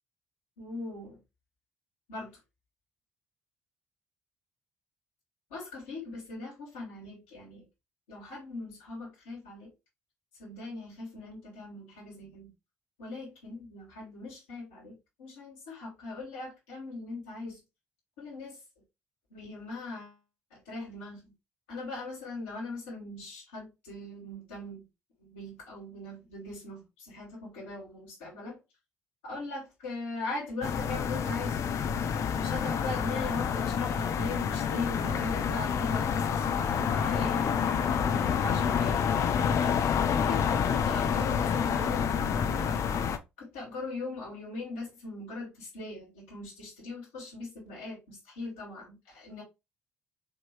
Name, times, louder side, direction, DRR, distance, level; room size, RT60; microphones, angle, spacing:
voice 1, 0.6-1.2 2.1-2.4 5.5-7.7 8.1-9.7 10.4-12.5 13.0-14.9 15.2-17.6 18.2-18.6 19.3-20.2 20.5-21.3 21.7-24.9 25.2-28.6 29.2-31.6 32.3-39.5 40.1-42.9 43.4-49.4, left 2 dB, 85° left, 2.1 m, -40 dB
sound 1, 30.6-43.2, left 7 dB, 55° left, 0.6 m, -28 dB
4.9 x 3.0 x 3.1 m
hypercardioid pair, 50°, 6 cm